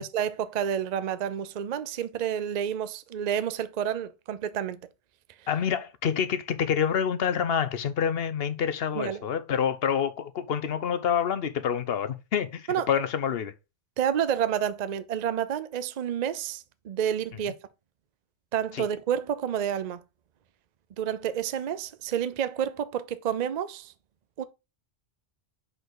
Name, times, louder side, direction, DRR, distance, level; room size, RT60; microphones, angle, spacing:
voice 1, 0.0-4.8 8.9-9.2 12.7-12.9 14.0-17.5 18.5-20.0 21.0-23.9 24.4-24.5, right 9 dB, 50° right, 0.6 m, -29 dB
voice 2, 5.5-13.5 18.7-18.8, left 8 dB, 60° left, 0.9 m, -27 dB
6.1 x 5.4 x 3.9 m
omnidirectional pair, 1.2 m